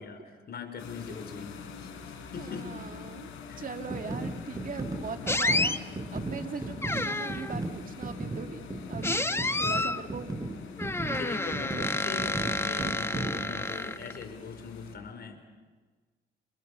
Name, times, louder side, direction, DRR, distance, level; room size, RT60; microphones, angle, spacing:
voice 1, 0.0-2.9 3.5-3.6 9.3-9.9 11.1-15.4, left 5 dB, 55° left, 7 dB, 5.3 m, -42 dB
sound 1, 0.8-15.0, left 7 dB, 85° left, 4.8 m, -45 dB
voice 2, 1.1-1.4 2.4-3.3 3.6-5.8 6.1-9.3 9.6-10.3 11.1-11.4, right 5 dB, 45° right, 7 dB, 2.4 m, -40 dB
sound 2, 3.9-13.6, right 2 dB, 20° right, 4.4 m, -36 dB
sound 3, 5.3-5.8 6.8-7.6 9.0-10.0 10.8-14.2, left 2 dB, 10° left, 1.1 m, -30 dB
29.5 x 29.0 x 6.8 m, 1.4 s
cardioid pair, 90°, 20 cm